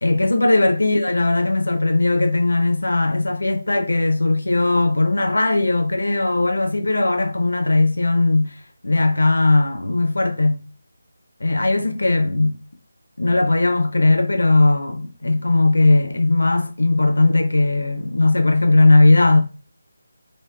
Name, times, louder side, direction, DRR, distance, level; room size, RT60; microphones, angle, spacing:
voice 1, 0.0-10.7 11.4-12.6 13.2-19.4, left 2 dB, 70° left, 0.5 m, -18 dB
2.6 x 2.2 x 2.2 m
figure-of-eight pair, 155°, 0 cm